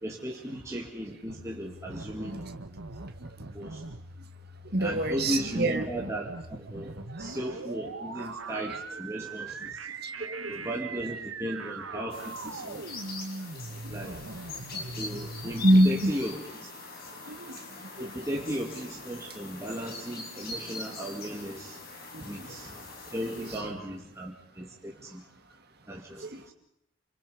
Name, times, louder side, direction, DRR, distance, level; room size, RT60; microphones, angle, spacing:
voice 1, 0.0-2.4 3.4-3.8 4.8-9.8 10.5-12.9 13.9-14.2 15.0-16.4 18.0-21.8 22.2-25.2 25.9-26.3, equal, 15° right, -2 dB, 2.4 m, -36 dB
sound 1, 1.3-15.7, right 3 dB, 70° right, 1.7 m, -41 dB
voice 2, 4.7-5.9 6.8-7.3 10.0-10.7 11.9-12.0 12.7-12.9 13.8-14.2 14.8-14.9 15.6-16.1 17.3-17.6 18.0-18.1 22.1-22.6 23.4-23.5 26.2-26.5, right 1 dB, 50° right, 6 dB, 2.2 m, -27 dB
sound 2, 12.1-23.6, left 3 dB, 45° left, 5.5 m, -43 dB
28.5 x 26.5 x 5.1 m, 0.76 s
head